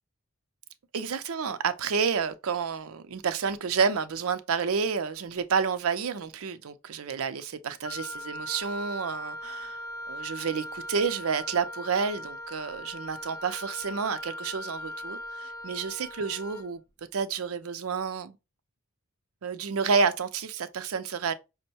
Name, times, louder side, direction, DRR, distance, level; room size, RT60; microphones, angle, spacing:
voice 1, 0.9-9.8 10.1-16.8 17.1-18.4 19.4-21.3, right 5 dB, 85° right, 0.5 m, -30 dB
Wind instrument woodwind instrument, 7.8-16.7, left 1 dB, 15° left, 0.4 m, -39 dB
5.3 x 2.1 x 2.8 m
head